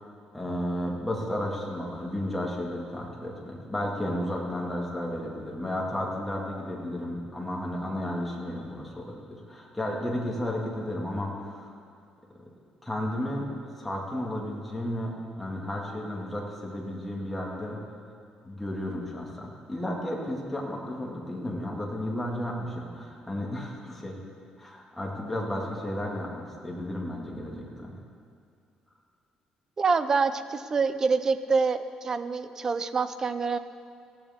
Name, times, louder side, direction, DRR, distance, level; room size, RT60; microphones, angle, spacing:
voice 1, 0.3-11.7 12.8-13.5 13.8-17.8 18.4-24.2 24.6-27.9, left 1 dB, 5° left, -3 dB, 2.1 m, -33 dB
voice 2, 29.8-33.6, right 4 dB, 25° right, 11 dB, 0.5 m, -26 dB
19.0 x 15.0 x 3.6 m, 2.4 s
cardioid pair, 175°, 2 cm